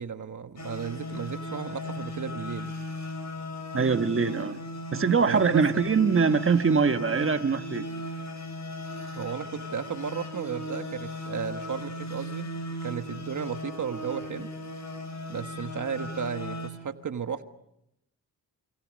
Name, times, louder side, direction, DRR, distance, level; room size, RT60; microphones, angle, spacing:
voice 1, 0.0-2.7 5.3-5.8 9.1-14.5 15.3-17.4, right 7 dB, 50° right, 1.4 m, -34 dB
sound 1, 0.6-16.7, left 1 dB, 45° left, 7.0 m, -37 dB
voice 2, 3.7-4.6 4.9-7.9, right 5 dB, 35° right, 1.4 m, -23 dB
27.0 x 27.0 x 6.4 m
cardioid pair, 95°, 38 cm